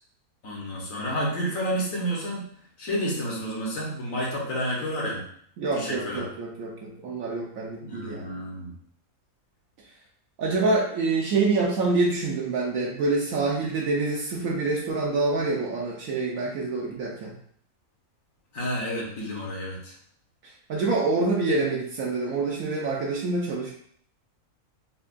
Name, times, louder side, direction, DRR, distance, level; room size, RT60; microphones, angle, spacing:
voice 1, 0.4-2.5 2.8-5.3 5.7-6.2 7.8-8.8 18.5-19.9, equal, 70° left, -3 dB, 1.4 m, -30 dB
voice 2, 5.6-8.4 10.4-17.3 20.4-23.7, right 3 dB, 70° right, -3 dB, 1.0 m, -26 dB
5.7 x 2.3 x 2.5 m, 0.63 s
omnidirectional pair, 1.5 m